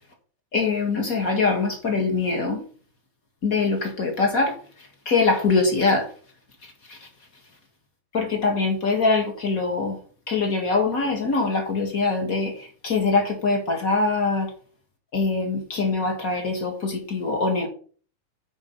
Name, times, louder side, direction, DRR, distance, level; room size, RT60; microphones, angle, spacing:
voice 1, 0.5-2.6 3.4-6.1 6.9-7.1 8.1-10.0 10.3-14.5 15.1-17.7, left 3 dB, 40° left, 1.4 m, -23 dB
8.9 x 5.2 x 5.4 m
omnidirectional pair, 3.8 m